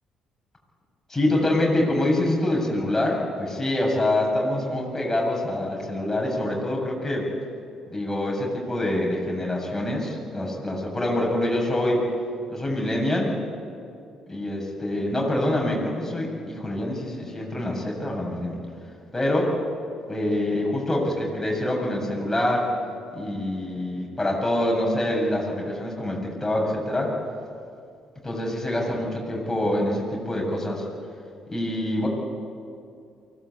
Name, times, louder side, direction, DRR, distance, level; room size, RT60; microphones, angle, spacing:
voice 1, 1.1-7.3 7.9-12.1 12.5-13.3 14.3-18.6 19.1-19.5 20.1-22.7 23.1-27.2 28.2-30.8 31.5-32.1, left 1 dB, 15° left, -1 dB, 7.4 m, -25 dB
24.0 x 18.0 x 8.5 m, 2.5 s
figure-of-eight pair, 45°, 2 cm